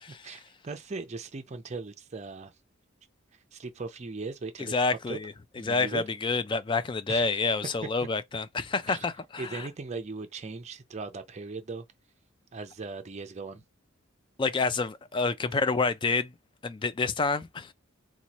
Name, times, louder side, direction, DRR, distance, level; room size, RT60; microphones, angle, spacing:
voice 1, 0.2-2.5 3.5-5.2 5.5-6.0 7.1-7.5 8.9-9.1 9.4-11.9 12.5-13.6, right 3 dB, 35° right, 0.5 m, -39 dB
voice 2, 4.6-9.7 14.4-16.3 16.6-17.7, left 4 dB, 25° left, 0.3 m, -28 dB
3.0 x 2.2 x 4.0 m
head